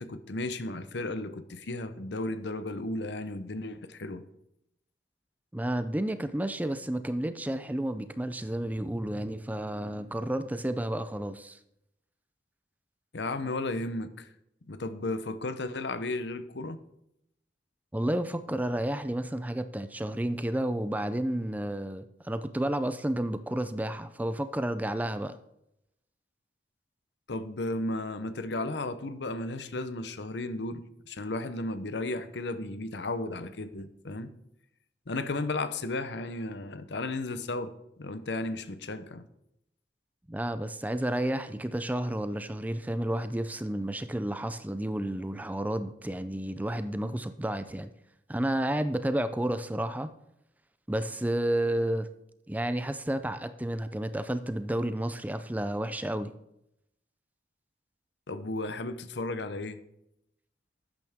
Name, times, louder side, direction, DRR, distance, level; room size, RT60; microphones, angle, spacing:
voice 1, 0.0-4.2 13.1-14.3 14.7-16.8 27.3-34.3 35.1-39.2 58.3-59.8, left 2 dB, 80° left, 0.8 m, -34 dB
voice 2, 5.5-11.6 17.9-25.4 40.3-47.9 48.3-50.1 50.9-52.1 52.5-56.3, right 1 dB, 10° right, 0.5 m, -31 dB
12.0 x 9.0 x 3.6 m
head